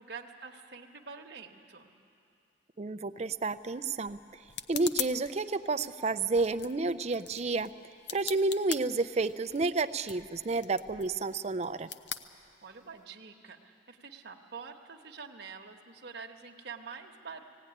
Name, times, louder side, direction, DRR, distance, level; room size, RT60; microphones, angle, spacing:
voice 1, 0.0-1.9 12.6-17.4, right 5 dB, 60° right, 1 dB, 1.1 m, -46 dB
voice 2, 2.8-4.2 4.7-7.7 8.1-11.9, right 3 dB, 35° right, 11 dB, 0.5 m, -30 dB
sound 1, 3.2-13.0, left 8 dB, 60° left, 0.7 m, -43 dB
17.5 x 17.0 x 9.9 m, 2.6 s
head